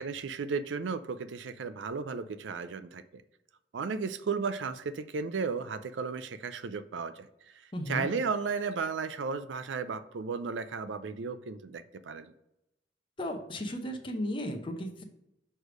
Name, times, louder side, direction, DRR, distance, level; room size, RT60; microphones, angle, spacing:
voice 1, 0.0-3.2 3.7-7.3 7.9-12.3, right 5 dB, 90° right, 12 dB, 0.5 m, -34 dB
voice 2, 7.7-8.0 13.2-15.0, equal, 30° left, 4 dB, 0.7 m, -35 dB
6.3 x 3.3 x 5.0 m, 0.84 s
head